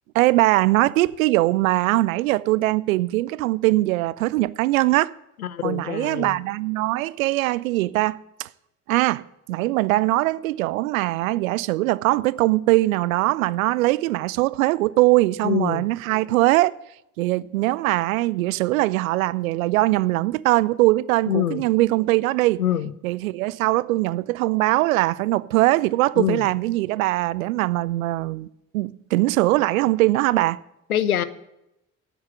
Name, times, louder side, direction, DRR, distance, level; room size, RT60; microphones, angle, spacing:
voice 1, 0.1-5.1 5.6-8.5 8.9-16.7 17.2-22.6 23.0-28.5 28.7-30.6, right 18 dB, 70° right, 0.5 m, -21 dB
voice 2, 5.4-6.4 15.4-15.8 21.3-21.6 22.6-22.9 26.2-26.4 30.9-31.2, left 10 dB, 80° left, 0.6 m, -24 dB
9.0 x 8.8 x 7.6 m
figure-of-eight pair, 50°, 43 cm